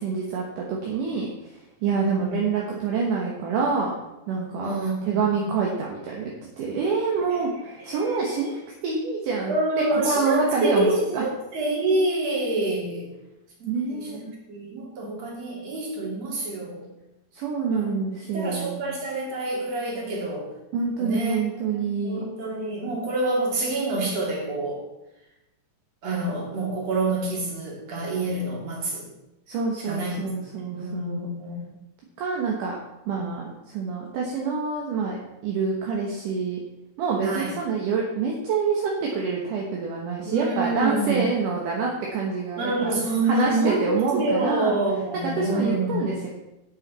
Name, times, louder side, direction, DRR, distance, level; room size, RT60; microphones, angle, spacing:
voice 1, 0.0-3.9 4.3-4.8 5.1-9.6 9.9-11.2 13.7-14.2 17.3-18.9 20.7-22.2 29.5-31.3 32.2-32.8 33.1-36.6 37.0-42.9 43.2-44.8 45.2-46.3, right 5 dB, 70° right, -2 dB, 2.7 m, -27 dB
voice 2, 2.0-2.5 4.5-5.6 7.3-7.5 7.9-8.5 9.5-13.1 13.6-16.8 17.7-18.0 18.3-20.5 21.0-21.4 21.7-24.8 26.0-29.1 29.9-30.4 30.7-31.7 33.2-33.3 37.2-37.5 40.3-41.2 42.6-46.2, right 2 dB, 50° right, -3 dB, 3.7 m, -27 dB
11.5 x 8.9 x 4.2 m, 0.95 s
omnidirectional pair, 4.0 m